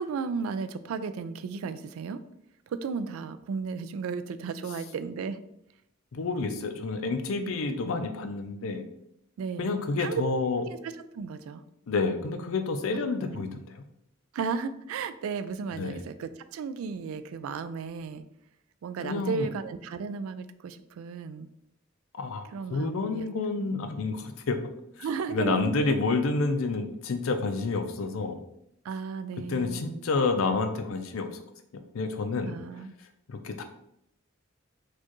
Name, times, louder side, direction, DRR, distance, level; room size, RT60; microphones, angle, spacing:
voice 1, 0.0-2.2 2.7-5.4 9.4-10.2 10.6-11.6 12.9-13.4 14.3-18.2 18.8-21.5 22.5-23.3 23.6-23.7 25.0-26.0 28.8-29.9 32.4-32.9, right 5 dB, 85° right, 12 dB, 0.3 m, -34 dB
voice 2, 6.1-8.8 9.6-10.6 11.9-13.8 15.7-16.0 19.0-19.5 22.2-24.6 25.0-28.4 29.5-31.3 31.7-32.6 33.3-33.6, left 3 dB, 75° left, 8 dB, 0.5 m, -29 dB
4.4 x 2.4 x 3.0 m, 0.78 s
head